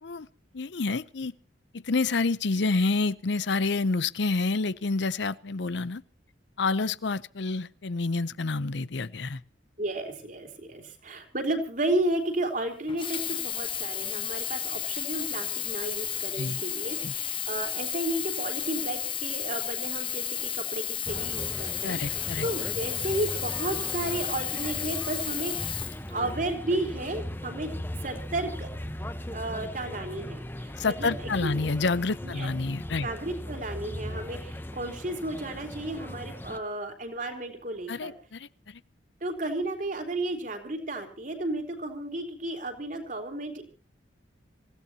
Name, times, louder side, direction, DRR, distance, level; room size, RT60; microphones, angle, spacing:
voice 1, 0.5-1.3 1.7-6.0 6.6-9.4 16.4-16.6 17.0-17.1 21.8-22.5 30.8-33.1 37.9-38.8, left 3 dB, 70° left, 17 dB, 0.7 m, -28 dB
voice 2, 9.8-27.7 28.0-28.7 29.3-31.5 32.2-32.5 33.0-38.1 39.2-43.6, right 2 dB, 45° right, 6 dB, 3.5 m, -33 dB
Sink (filling or washing), 12.9-26.6 27.4-27.5, left 9 dB, 25° left, 1.4 m, -33 dB
sound 1, 21.0-36.6, left 1 dB, 10° left, 1.0 m, -38 dB
26.5 x 16.5 x 2.9 m, 0.36 s
head